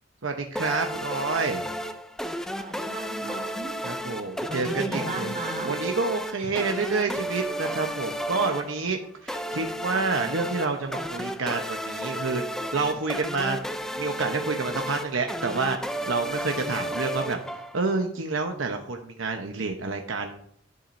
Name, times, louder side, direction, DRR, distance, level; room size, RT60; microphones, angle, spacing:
voice 1, 0.2-1.6 3.8-5.4 5.6-9.0 9.2-12.4 12.7-13.6 14.0-17.4 17.7-20.4, right 3 dB, 85° right, 4 dB, 0.9 m, -28 dB
sound 1, 0.5-18.0, equal, 5° left, 0.5 m, -33 dB
voice 2, 2.6-3.8 4.5-5.8 6.4-6.5, right 2 dB, 35° right, 1 dB, 2.5 m, -34 dB
10.5 x 7.1 x 2.6 m, 0.63 s
head